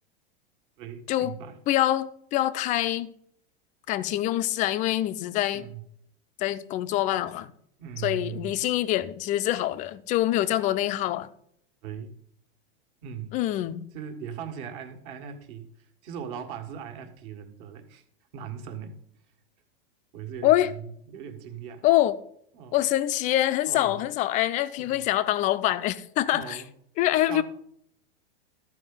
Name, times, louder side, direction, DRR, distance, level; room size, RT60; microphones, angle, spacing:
voice 1, 0.8-1.6 5.5-5.8 7.8-8.5 11.8-12.1 13.0-13.3 13.9-18.0 18.3-19.0 20.1-21.8 22.5-22.8 23.6-24.1 24.8-25.0 26.3-26.7 27.1-27.4, right 8 dB, 45° right, 1.7 m, -39 dB
voice 2, 1.7-3.1 3.9-5.6 6.4-7.5 8.0-11.3 13.3-13.9 20.4-20.7 21.8-22.2 22.7-26.6 27.0-27.4, left 14 dB, 25° left, 0.4 m, -25 dB
13.0 x 4.9 x 5.4 m
supercardioid pair, 145°, 31 cm